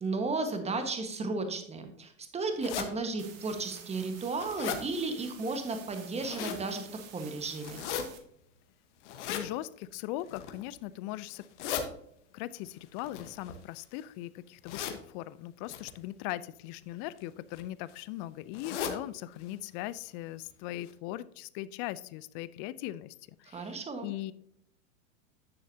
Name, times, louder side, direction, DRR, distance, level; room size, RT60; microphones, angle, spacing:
voice 1, 0.0-6.9 7.1-7.8 23.5-24.1, right 3 dB, 15° right, 6 dB, 1.3 m, -34 dB
sound 1, 2.6-2.9 3.5-3.6 4.0-4.8 5.9-6.6 7.6-8.0 9.0-9.5 10.2-10.6 11.3-11.8 13.0-14.0 14.6-15.0 15.7-15.9 16.9-17.2 17.5-17.6 17.9-18.0 18.5-19.0 19.4-19.5 19.8-19.9 20.5-20.6 20.9-21.0, left 8 dB, 65° left, 1.3 m, -37 dB
sound 2, 3.2-8.2, right 8 dB, 40° right, 1.4 m, -50 dB
voice 2, 9.3-11.4 12.3-24.3, left 15 dB, 40° left, 17 dB, 0.4 m, -39 dB
9.8 x 6.4 x 2.7 m, 0.69 s
hypercardioid pair, 105°, 39 cm